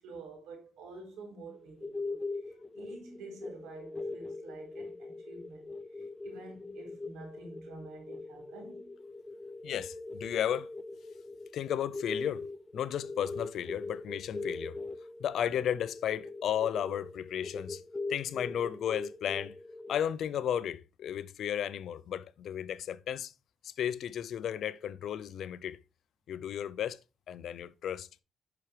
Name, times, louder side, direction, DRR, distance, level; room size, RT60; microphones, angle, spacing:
voice 1, 0.0-8.9, right 3 dB, 90° right, 4.2 m, -49 dB
sound 1, 1.5-20.0, left 3 dB, 15° left, 0.5 m, -41 dB
voice 2, 9.6-10.7 11.5-12.5 12.7-14.8 15.2-17.8 18.1-19.5 19.9-23.3 23.6-25.8 26.3-27.0 27.3-28.1, left 9 dB, 70° left, 0.6 m, -34 dB
10.5 x 5.9 x 3.3 m
cardioid pair, 90°, 0 cm